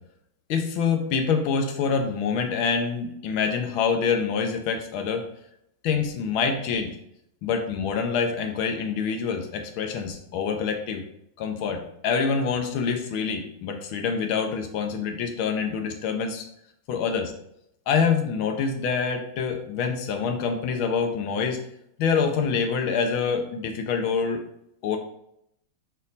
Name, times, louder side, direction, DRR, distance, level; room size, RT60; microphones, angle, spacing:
voice 1, 0.5-5.3 5.8-6.9 7.4-11.0 11.4-16.4 16.9-17.3 17.9-21.6 22.0-24.4 24.8-25.0, left 6 dB, 80° left, 5 dB, 1.6 m, -26 dB
6.1 x 4.3 x 4.0 m, 0.76 s
omnidirectional pair, 2.2 m